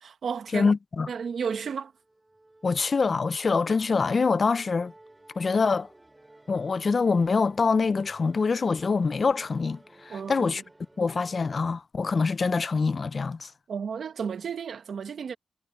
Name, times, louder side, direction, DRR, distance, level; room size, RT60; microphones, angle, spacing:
voice 1, 0.0-0.7 1.1-1.9 10.1-10.6 13.7-15.3, right 6 dB, 75° right, 1.0 m, -33 dB
voice 2, 0.5-1.1 2.6-4.9 5.4-5.9 6.5-10.6 11.0-13.5, left 4 dB, 45° left, 0.5 m, -25 dB
Musical instrument, 1.9-11.7, right 2 dB, 15° right, 3.7 m, -55 dB
wide cardioid pair, 110°, 0 cm